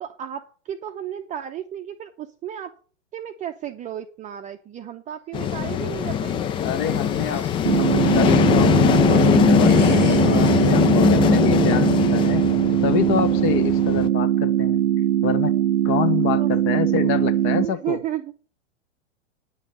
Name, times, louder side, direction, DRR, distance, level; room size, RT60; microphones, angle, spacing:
voice 1, 0.0-2.7 3.1-6.4 16.4-17.2 17.6-18.3, right 10 dB, 20° right, 6 dB, 0.8 m, -33 dB
sound 1, 5.3-14.1, left 8 dB, 15° left, 0.4 m, -20 dB
sound 2, 6.0-8.5 8.9-11.8, left 3 dB, 80° left, 3.2 m, -42 dB
voice 2, 6.6-7.4 7.8-12.4 12.8-14.8 15.2-15.5 15.8-18.0, left 8 dB, 35° left, 13 dB, 1.1 m, -26 dB
sound 3, 7.6-17.7, right 11 dB, 70° right, 0.8 m, -21 dB
9.8 x 7.1 x 6.5 m, 0.41 s
figure-of-eight pair, 100°, 37 cm